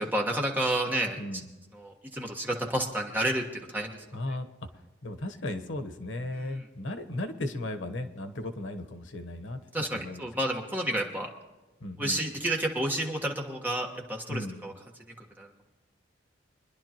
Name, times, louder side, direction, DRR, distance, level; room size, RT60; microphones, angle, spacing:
voice 1, 0.0-1.2 1.7-4.0 6.4-6.6 9.7-11.3 12.0-14.7 15.4-15.5, right 1 dB, 10° right, 0 dB, 1.4 m, -30 dB
voice 2, 1.2-1.5 4.1-4.4 5.0-9.6 9.9-10.3 11.8-12.2 14.3-14.6, left 1 dB, 90° left, 7 dB, 1.1 m, -36 dB
24.0 x 11.0 x 3.0 m, 1.1 s
head